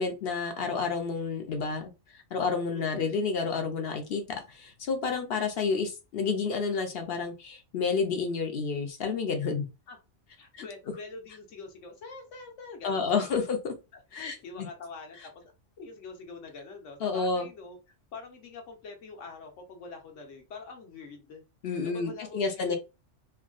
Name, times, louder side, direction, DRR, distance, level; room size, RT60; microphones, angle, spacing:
voice 1, 0.0-9.7 10.5-10.6 12.8-13.7 14.1-14.7 17.0-17.5 21.6-22.8, left 5 dB, 60° left, 0.7 m, -30 dB
voice 2, 2.7-3.1 9.9-10.0 10.4-13.0 13.9-15.4 15.8-17.8 18.1-21.4 21.9-22.8, left 4 dB, 80° left, 1.2 m, -44 dB
3.4 x 2.2 x 2.3 m
omnidirectional pair, 1.3 m